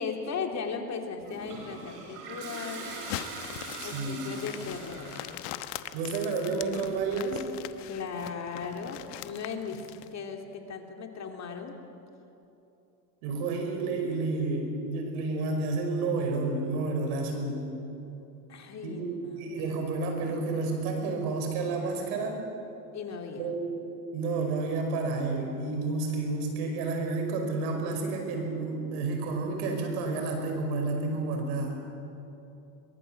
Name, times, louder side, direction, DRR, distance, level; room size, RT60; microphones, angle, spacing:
voice 1, 0.0-3.0 3.8-5.2 7.9-11.8 18.5-19.4 22.9-23.5, left 5 dB, 35° left, 3 dB, 2.9 m, -37 dB
Toilet flush, 1.2-5.5, right 3 dB, 90° right, 6.7 m, -42 dB
sound 1, 2.8-10.1, left 14 dB, 65° left, 1.2 m, -41 dB
voice 2, 3.8-4.4 5.9-7.5 13.2-17.7 18.8-19.1 19.4-22.4 23.4-23.8 24.1-31.7, right 3 dB, 75° right, 4 dB, 5.7 m, -30 dB
23.0 x 22.5 x 7.7 m, 2.9 s
supercardioid pair, 110°, 45 cm